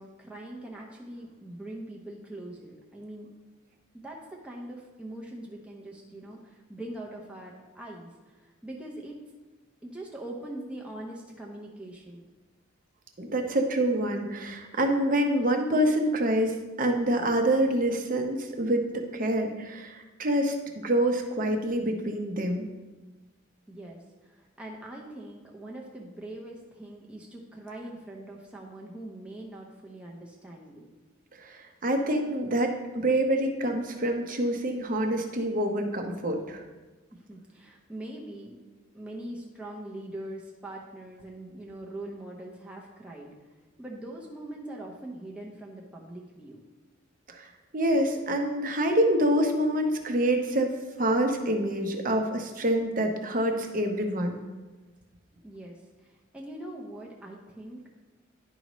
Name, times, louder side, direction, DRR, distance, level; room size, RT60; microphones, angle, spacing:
voice 1, 0.0-3.3 4.0-9.2 9.8-12.2 23.7-30.9 37.1-38.6 38.9-43.3 43.8-46.6 55.4-58.0, right 1 dB, 5° right, -2 dB, 0.7 m, -42 dB
voice 2, 13.2-20.6 20.8-22.7 31.4-36.6 47.3-50.7 51.0-54.4, right 1 dB, 40° right, 4 dB, 0.8 m, -26 dB
10.5 x 5.3 x 3.1 m, 1.2 s
head